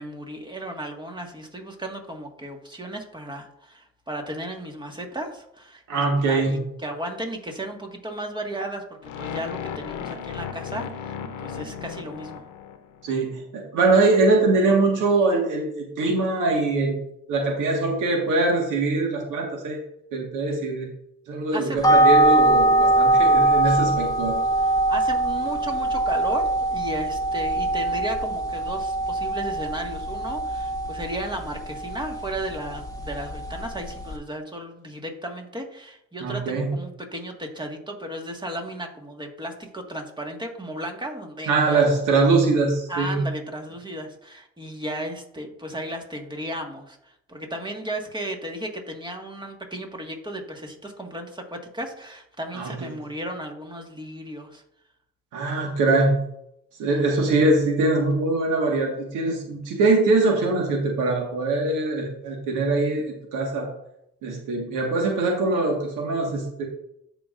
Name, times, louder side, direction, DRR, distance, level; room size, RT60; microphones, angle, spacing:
voice 1, 0.0-8.8 9.2-12.4 21.5-21.9 23.6-23.9 24.6-41.8 42.9-54.6 56.9-57.0, right 1 dB, 15° right, 2 dB, 1.7 m, -35 dB
voice 2, 5.9-6.6 13.0-17.0 17.3-19.8 20.1-20.9 21.3-24.4 36.2-36.7 41.5-43.2 52.5-52.9 55.3-56.2 56.8-63.7 64.2-66.6, right 3 dB, 90° right, 1 dB, 1.7 m, -22 dB
sound 1, 9.0-13.1, left 7 dB, 75° left, 0.8 m, -35 dB
sound 2, 21.8-34.2, right 2 dB, 10° left, 1.2 m, -22 dB
14.0 x 5.0 x 2.6 m, 0.76 s
cardioid pair, 90°, 30 cm